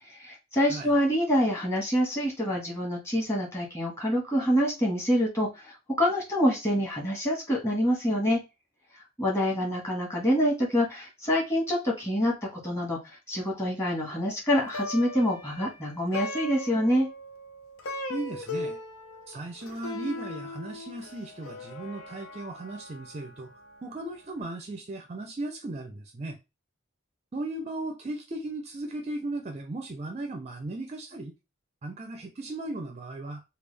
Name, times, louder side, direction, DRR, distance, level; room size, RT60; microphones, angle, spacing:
voice 1, 0.1-8.4 9.2-13.0 13.3-17.1, equal, 15° left, 1.3 m, -26 dB
Plucked string instrument, 14.5-24.0, left 2 dB, 90° left, 0.7 m, -39 dB
voice 2, 18.1-18.8 19.3-23.5 23.8-26.4 27.3-31.3 31.8-33.4, right 2 dB, 30° right, 0.4 m, -36 dB
3.3 x 2.3 x 3.3 m
head